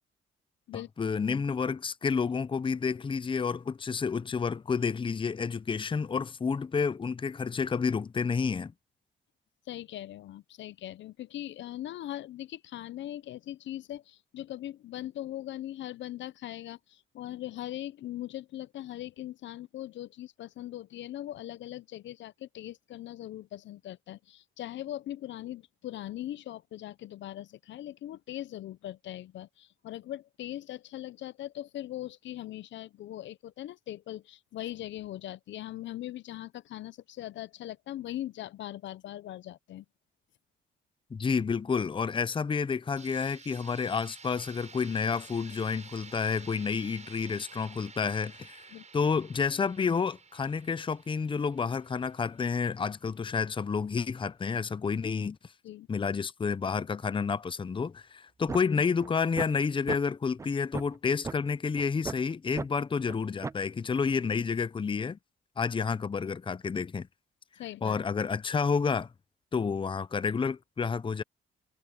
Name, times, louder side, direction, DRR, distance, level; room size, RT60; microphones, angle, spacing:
voice 1, 0.7-8.7 41.1-48.7 48.9-55.4 55.9-65.2 65.6-67.1 67.8-69.1 69.5-71.2, left 5 dB, 25° left, 0.6 m, -30 dB
voice 2, 9.7-39.8 48.7-48.9 55.6-55.9 67.6-68.0, left 13 dB, 70° left, 0.6 m, -40 dB
sound 1, 43.0-52.7, right 5 dB, 35° right, 7.6 m, -51 dB
sound 2, 58.5-58.6 59.0-59.1 59.4-59.5 59.9-60.0 60.4-60.5 60.7-60.9 61.2-61.4 61.8-62.1 62.6-62.7 63.1-63.2 63.4-63.6, right 4 dB, 15° right, 0.3 m, -35 dB
cardioid pair, 90°, 20 cm